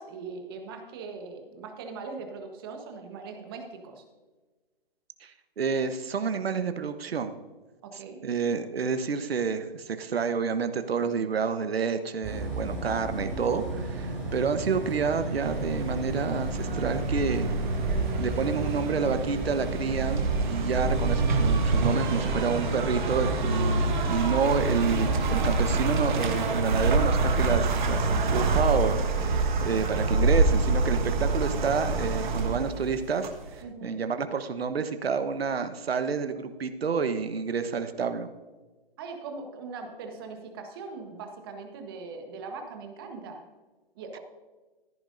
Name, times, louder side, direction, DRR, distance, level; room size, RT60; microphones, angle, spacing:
voice 1, 0.0-4.0 7.8-8.2 33.6-33.9 39.0-43.4 43.9-44.2, right 4 dB, 25° right, 4 dB, 1.1 m, -40 dB
voice 2, 5.2-7.4 8.2-17.5 18.2-38.3, right 5 dB, 85° right, 9 dB, 1.0 m, -29 dB
Bus, 12.2-26.1, right 1 dB, 5° right, 2.8 m, -33 dB
sound 1, 15.4-33.6, right 3 dB, 55° right, 1.4 m, -27 dB
14.0 x 10.5 x 2.6 m, 1.3 s
hypercardioid pair, 160°, 30 cm